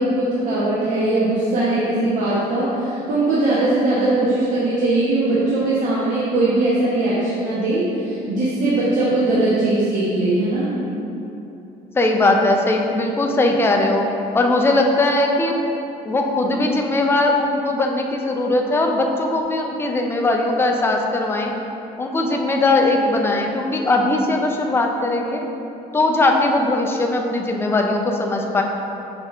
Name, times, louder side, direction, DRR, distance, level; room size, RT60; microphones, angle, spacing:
voice 1, 0.0-10.7, right 2 dB, 50° right, -9 dB, 0.8 m, -20 dB
voice 2, 12.0-14.1 14.3-15.6 16.0-21.5 22.0-25.5 25.9-28.6, left 2 dB, 15° left, 2 dB, 0.3 m, -19 dB
5.8 x 3.3 x 2.4 m, 2.9 s
cardioid pair, 125°, 17 cm